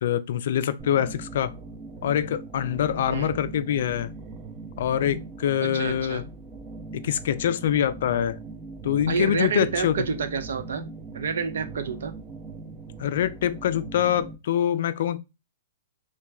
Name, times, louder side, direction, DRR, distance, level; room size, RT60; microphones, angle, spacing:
voice 1, 0.0-1.5 2.0-4.1 4.8-6.2 7.0-8.4 8.8-10.0 13.0-15.2, left 10 dB, 60° left, 0.3 m, -25 dB
sound 1, 0.8-14.4, right 3 dB, 20° right, 0.5 m, -40 dB
voice 2, 5.6-6.2 9.1-10.9 11.1-12.1, right 5 dB, 75° right, 0.5 m, -29 dB
3.0 x 2.2 x 2.3 m
hypercardioid pair, 135°, 0 cm